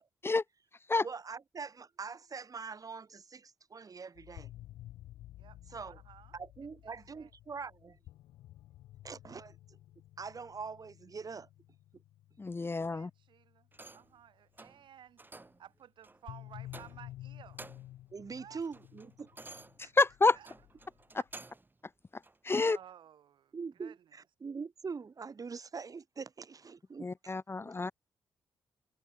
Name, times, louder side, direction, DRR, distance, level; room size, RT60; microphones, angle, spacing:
voice 1, 1.0-4.5 5.7-6.0 6.3-8.0 9.0-9.8 10.2-11.5 18.1-19.4 19.8-19.9 23.5-27.3 27.6-27.8, right 5 dB, 45° right, 3.6 m, -43 dB
sound 1, 4.2-14.3 16.3-21.3, left 14 dB, 85° left, 1.1 m, -52 dB
voice 2, 5.8-6.4 7.1-7.3 12.6-17.6 18.4-18.6 20.3-20.5 22.5-23.5 23.8-24.0, right 10 dB, 75° right, 2.6 m, -55 dB
voice 3, 12.4-13.1 19.8-20.4 22.1-22.8 27.0-27.9, left 3 dB, 30° left, 0.8 m, -29 dB
sound 2, 13.7-14.2 14.6-14.8 15.2-15.6 16.0-16.2 16.7-17.2 17.4-18.0 18.4-21.7 22.2-22.4, right 2 dB, 25° right, 2.9 m, -52 dB
supercardioid pair, 55°, 8 cm